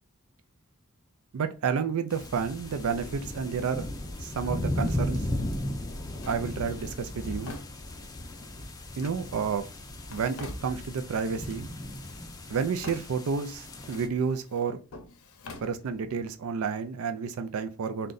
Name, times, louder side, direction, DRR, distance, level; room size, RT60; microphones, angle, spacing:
voice 1, 1.3-3.9 4.2-5.3 6.3-7.6 9.0-9.7 10.1-11.7 12.5-14.8 15.6-18.1, right 6 dB, 75° right, 0.4 m, -30 dB
sound 1, 2.1-14.1, left 1 dB, 15° left, 0.5 m, -36 dB
Drawer open or close, 6.2-8.3 9.0-11.1 11.5-12.3 12.5-13.5 13.9-16.3, left 3 dB, 75° left, 0.6 m, -48 dB
3.7 x 2.2 x 3.8 m
head